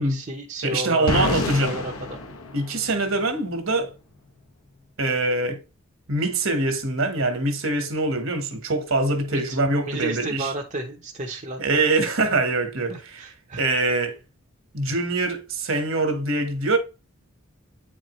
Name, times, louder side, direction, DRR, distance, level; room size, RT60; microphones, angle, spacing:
voice 1, 0.0-2.2 9.3-9.6 9.9-11.8 12.9-13.7, right 2 dB, 35° right, 0.8 m, -33 dB
voice 2, 0.6-1.8 2.5-3.9 5.0-5.6 6.1-10.5 11.6-13.2 13.6-14.2 14.7-16.8, right 2 dB, 65° right, 1.5 m, -24 dB
sound 1, 1.1-3.2, left 3 dB, 80° left, 1.1 m, -28 dB
8.7 x 4.4 x 3.1 m
head